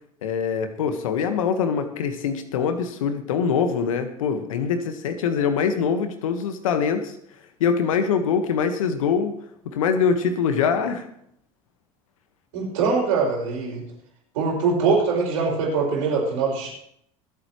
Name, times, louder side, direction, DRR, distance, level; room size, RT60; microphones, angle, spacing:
voice 1, 0.2-7.2 7.6-9.3 9.6-11.1, left 6 dB, 75° left, 8 dB, 1.4 m, -23 dB
voice 2, 12.5-13.8 14.3-16.7, right 4 dB, 75° right, -2 dB, 6.0 m, -23 dB
25.5 x 8.5 x 3.1 m, 0.72 s
hypercardioid pair, 70°, 17 cm